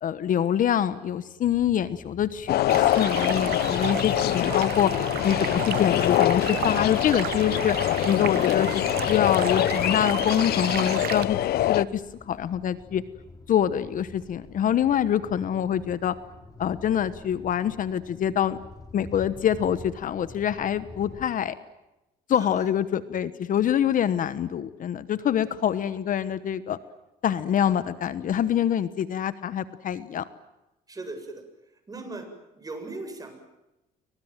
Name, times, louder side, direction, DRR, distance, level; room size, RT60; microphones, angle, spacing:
voice 1, 0.0-5.0 5.2-7.8 8.0-13.0 13.5-16.2 16.6-18.6 18.9-21.6 22.3-26.8 27.2-30.3, left 9 dB, 50° left, 14 dB, 1.2 m, -25 dB
sound 1, 1.5-21.3, left 3 dB, 20° left, 3.4 m, -47 dB
sound 2, 2.5-11.8, left 14 dB, 70° left, 0.9 m, -24 dB
Stream, 2.7-11.2, right 13 dB, 65° right, 1.1 m, -34 dB
voice 2, 30.9-31.4 31.9-32.3 32.6-33.4, right 2 dB, 20° right, 6 dB, 7.8 m, -38 dB
29.0 x 24.0 x 7.5 m, 0.96 s
cardioid pair, 110°, 17 cm